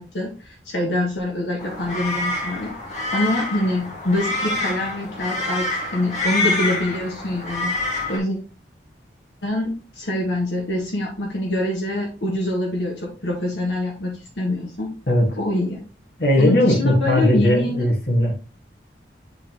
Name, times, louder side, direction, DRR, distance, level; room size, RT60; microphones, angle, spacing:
voice 1, 0.0-2.7 3.1-7.8 8.1-8.4 9.4-14.9 15.4-15.8 16.4-17.9, left 1 dB, 80° left, -1 dB, 1.3 m, -25 dB
sound 1, 1.6-8.2, left 2 dB, 40° left, 1.6 m, -27 dB
voice 2, 16.2-18.4, left 1 dB, 65° left, -1 dB, 1.8 m, -18 dB
8.5 x 3.7 x 2.9 m, 0.36 s
head